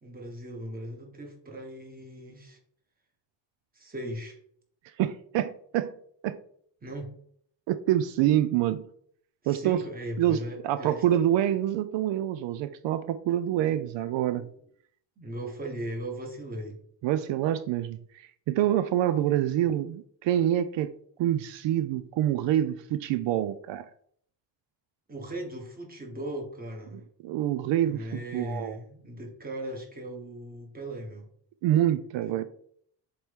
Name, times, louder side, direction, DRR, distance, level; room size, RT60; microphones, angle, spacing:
voice 1, 0.0-2.6 3.7-4.4 6.8-7.2 9.4-11.2 13.7-13.9 14.4-14.5 15.2-16.8 25.1-27.0 27.8-31.3 32.2-32.4, right 1 dB, 20° right, 1 dB, 1.5 m, -38 dB
voice 2, 5.0-5.9 6.2-6.4 7.7-8.8 9.5-9.8 10.2-10.4 10.6-14.5 17.0-20.9 21.2-23.9 26.9-28.8 31.6-32.4, right 12 dB, 80° right, 13 dB, 0.5 m, -26 dB
7.5 x 4.3 x 3.6 m, 0.63 s
cardioid pair, 165°, 44 cm